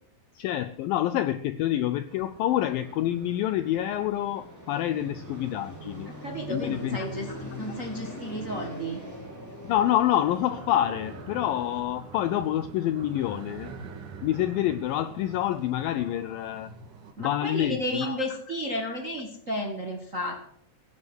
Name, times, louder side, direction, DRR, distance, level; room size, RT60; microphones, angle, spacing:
voice 1, 0.3-6.1 6.5-7.0 9.6-13.7 14.2-16.7 17.2-18.2, left 12 dB, 90° left, 12 dB, 2.0 m, -27 dB
Fixed-wing aircraft airplane, 1.6-11.8, equal, 5° left, 4.2 m, -43 dB
sound 1, 2.1-17.1, right 4 dB, 55° right, 3.0 m, -46 dB
voice 2, 6.2-9.0 17.2-20.4, equal, 70° right, 2 dB, 0.7 m, -33 dB
16.0 x 9.6 x 8.0 m, 0.67 s
omnidirectional pair, 4.9 m